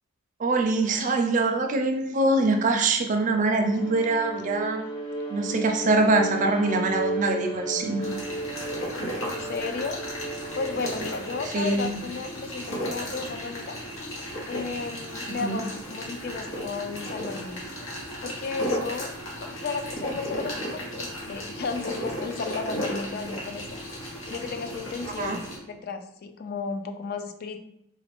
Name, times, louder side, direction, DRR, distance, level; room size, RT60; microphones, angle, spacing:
voice 1, 0.4-4.8 5.3-8.1 11.5-11.9 15.4-15.6 25.2-25.4, right 2 dB, 40° right, 4 dB, 0.4 m, -24 dB
Bowed string instrument, 3.3-11.7, right 2 dB, 25° left, 0.7 m, -34 dB
sound 1, 8.0-25.6, equal, 90° left, 1.3 m, -35 dB
voice 2, 9.2-10.0 10.6-13.8 14.5-17.6 18.2-19.1 19.4-23.7 24.3-27.6, left 4 dB, 50° left, 7 dB, 0.4 m, -34 dB
3.9 x 2.4 x 3.4 m, 0.80 s
head